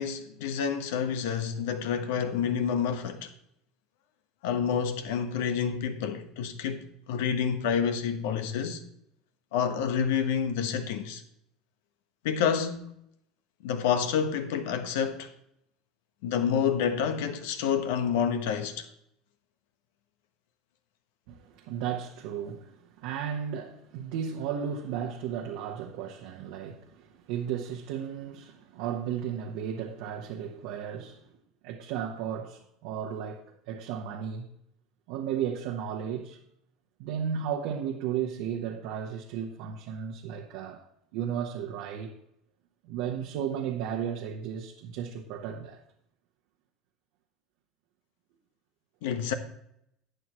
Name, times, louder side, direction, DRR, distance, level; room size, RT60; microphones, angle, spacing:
voice 1, 0.0-3.3 4.4-6.8 7.1-8.8 9.5-11.2 12.2-12.9 13.6-15.3 16.2-18.9 49.0-49.3, left 7 dB, 75° left, 1.2 m, -28 dB
voice 2, 21.3-31.2 31.6-34.5 35.1-36.4 37.0-40.8 41.1-42.1 42.8-45.8, right 8 dB, 70° right, 1.0 m, -34 dB
11.5 x 9.2 x 3.1 m
hypercardioid pair, 80°, 0 cm